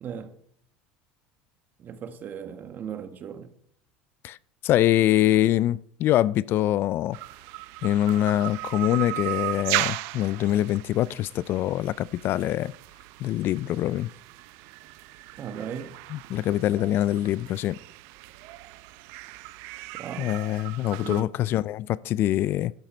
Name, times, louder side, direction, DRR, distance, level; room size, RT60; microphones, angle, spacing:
voice 1, 0.0-0.3 1.8-3.5 15.4-16.0 20.0-20.3 21.0-21.3, right 8 dB, 40° right, 1.4 m, -37 dB
voice 2, 4.6-7.2 7.8-12.7 13.2-14.1 16.1-17.8 20.2-22.7, left 13 dB, 50° left, 0.4 m, -24 dB
sound 1, 7.1-21.2, right 19 dB, 70° right, 0.6 m, -36 dB
12.0 x 10.5 x 4.4 m
supercardioid pair, 100°, 5 cm